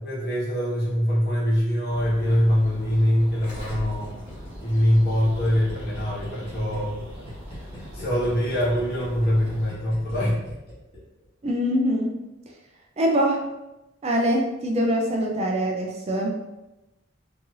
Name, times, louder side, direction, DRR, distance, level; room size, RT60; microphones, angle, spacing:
voice 1, 0.0-4.2 4.6-7.0 7.8-10.4, equal, 55° left, -6 dB, 1.2 m, -23 dB
sound 1, 1.9-9.7, equal, 10° right, 0.9 m, -41 dB
Gurgling, 3.4-11.0 11.2-11.3, equal, 30° left, 1.1 m, -40 dB
voice 2, 11.4-12.1 13.0-13.4 14.0-16.3, equal, 30° right, 1 dB, 0.4 m, -23 dB
3.1 x 2.7 x 2.5 m, 0.96 s
head